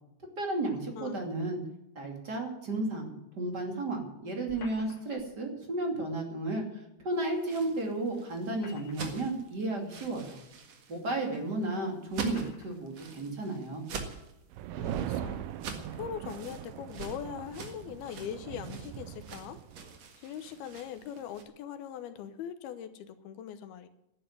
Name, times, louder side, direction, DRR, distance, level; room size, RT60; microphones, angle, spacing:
voice 1, 0.4-1.6 1.9-10.4 10.9-13.8, right 2 dB, 30° right, 2 dB, 2.7 m, -33 dB
sound 1, 4.5-5.3 7.0-7.1 8.3-9.3 10.1-10.2 11.2-11.3 12.3-12.8, left 4 dB, 45° left, 3.2 m, -51 dB
sound 2, 7.3-21.4, right 5 dB, 50° right, 2.3 m, -45 dB
sound 3, 14.5-20.0, right 11 dB, 80° right, 1.9 m, -40 dB
voice 2, 14.8-15.5 15.9-19.6 20.2-23.9, left 8 dB, 75° left, 10 dB, 2.8 m, -41 dB
12.0 x 10.0 x 9.7 m, 0.84 s
omnidirectional pair, 4.7 m